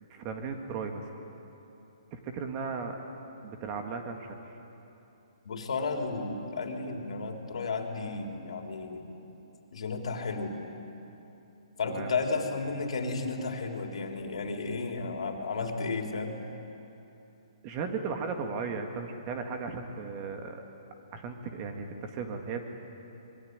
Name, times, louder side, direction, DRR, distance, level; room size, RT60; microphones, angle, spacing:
voice 1, 0.1-1.1 2.1-3.0 3.4-4.5 11.8-12.1 17.6-20.6 21.1-22.7, right 5 dB, 25° right, 5 dB, 1.9 m, -36 dB
voice 2, 5.4-9.1 9.7-10.6 11.8-16.4, left 3 dB, 70° left, 3 dB, 3.6 m, -33 dB
25.5 x 22.0 x 9.6 m, 3.0 s
hypercardioid pair, 160°, 3 cm